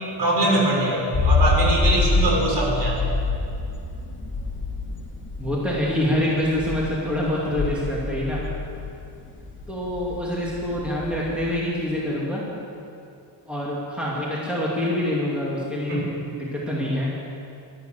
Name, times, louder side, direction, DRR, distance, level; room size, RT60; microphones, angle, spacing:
voice 1, 0.2-3.0 15.9-16.1, right 1 dB, 60° right, -1 dB, 4.0 m, -22 dB
sound 1, 1.1-11.6, left 3 dB, 25° left, 1.6 m, -26 dB
voice 2, 5.4-8.4 9.7-12.4 13.5-17.1, left 1 dB, ahead, -6 dB, 2.4 m, -26 dB
13.0 x 11.5 x 7.9 m, 2.6 s
wide cardioid pair, 155°, 45 cm